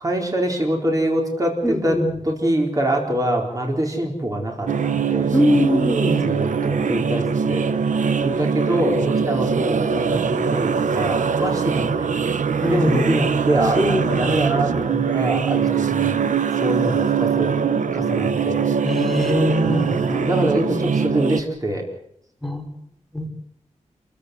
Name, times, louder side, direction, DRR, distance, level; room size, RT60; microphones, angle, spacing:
voice 1, 0.0-2.0 2.2-5.3 6.2-7.7 8.2-12.2 12.7-16.2 16.5-17.5 17.9-18.6 19.6-21.8, right 1 dB, 25° right, 1 dB, 4.6 m, -24 dB
voice 2, 1.6-2.1 5.3-6.3 6.7-6.9 11.4-11.6 12.6-13.1 13.8-14.3 18.8-20.2 22.4-22.7 23.1-23.3, equal, ahead, 2 dB, 3.4 m, -22 dB
sound 1, 4.7-21.4, right 6 dB, 75° right, 0.9 m, -22 dB
27.5 x 15.5 x 8.0 m, 0.72 s
wide cardioid pair, 150°, 13 cm